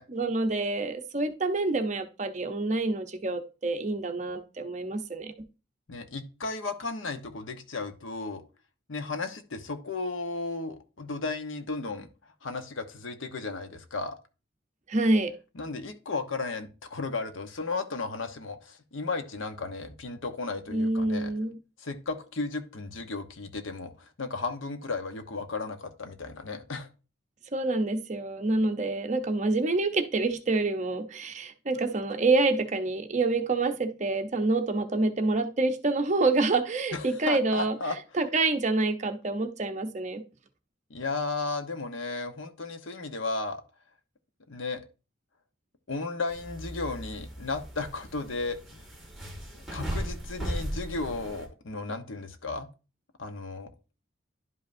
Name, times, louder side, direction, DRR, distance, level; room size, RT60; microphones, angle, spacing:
voice 1, 0.1-5.5 14.9-15.3 20.7-21.6 27.5-37.8 38.1-40.2, right 2 dB, 35° right, 7 dB, 0.7 m, -27 dB
voice 2, 5.9-8.4 8.9-12.1 12.4-14.2 15.5-21.3 21.8-26.9 36.9-38.0 40.9-43.6 44.5-44.8 45.9-48.9 49.5-52.7 53.2-53.7, left 3 dB, 85° left, 8 dB, 0.9 m, -34 dB
sound 1, 46.3-51.5, right 1 dB, ahead, 2.1 m, -37 dB
11.0 x 5.3 x 2.6 m, 0.32 s
head